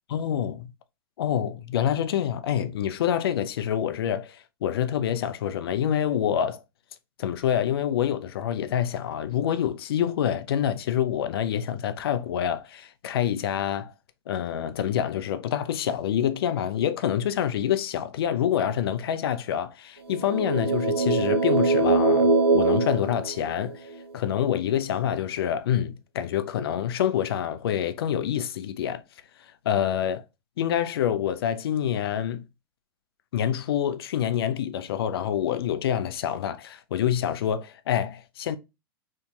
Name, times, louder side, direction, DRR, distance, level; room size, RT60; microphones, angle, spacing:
voice 1, 0.1-0.7 1.2-6.6 7.2-13.9 14.3-29.0 29.4-30.2 30.6-32.4 33.3-38.6, left 9 dB, 70° left, 0.4 m, -27 dB
sound 1, 20.1-23.9, right 3 dB, 90° right, 0.9 m, -22 dB
2.8 x 2.7 x 2.3 m
hypercardioid pair, 100°, 13 cm